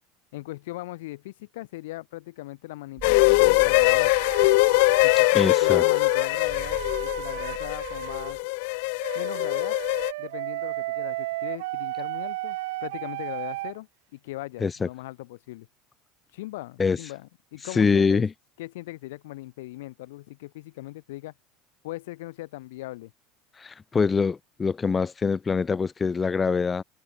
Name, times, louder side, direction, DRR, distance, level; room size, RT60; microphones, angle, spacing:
voice 1, 0.3-4.1 5.0-8.4 9.1-9.8 10.2-15.7 16.3-18.2 18.6-21.3 21.8-23.1, left 18 dB, 90° left, 2.9 m, -39 dB
sound 1, 3.0-10.1, left 29 dB, 75° left, 0.6 m, -22 dB
sound 2, 3.0-4.8 6.4-8.4, right 6 dB, 20° right, 6.3 m, -43 dB
sound 3, 3.8-8.4 9.0-13.8, right 19 dB, 85° right, 1.4 m, -34 dB
voice 2, 5.3-5.8 14.6-14.9 16.8-17.0 17.7-18.3 23.6-26.8, left 5 dB, 20° left, 0.8 m, -24 dB
supercardioid pair, 135°, 0 cm